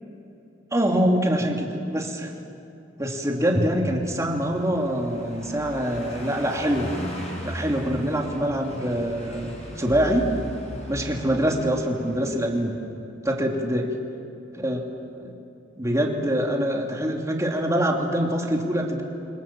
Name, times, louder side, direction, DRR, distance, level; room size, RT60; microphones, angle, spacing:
voice 1, 0.7-2.3 3.0-6.9 7.4-9.5 9.8-10.3 10.9-12.7 13.2-13.9 14.5-14.8 15.1-15.3 15.8-19.0, equal, 15° right, 1 dB, 2.9 m, -24 dB
Car passing by, 4.2-12.6, equal, 35° left, 6.8 m, -37 dB
29.5 x 25.0 x 7.6 m, 2.7 s
head